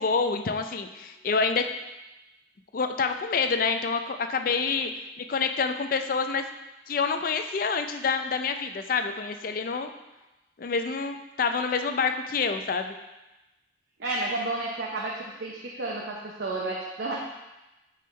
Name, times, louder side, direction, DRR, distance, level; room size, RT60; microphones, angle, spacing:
voice 1, 0.0-1.6 2.7-4.9 5.2-6.4 6.9-9.9 10.6-12.9, left 5 dB, 55° left, 7 dB, 0.4 m, -27 dB
voice 2, 14.0-17.1, right 2 dB, 85° right, -3 dB, 0.8 m, -31 dB
9.3 x 3.7 x 3.2 m, 1.0 s
head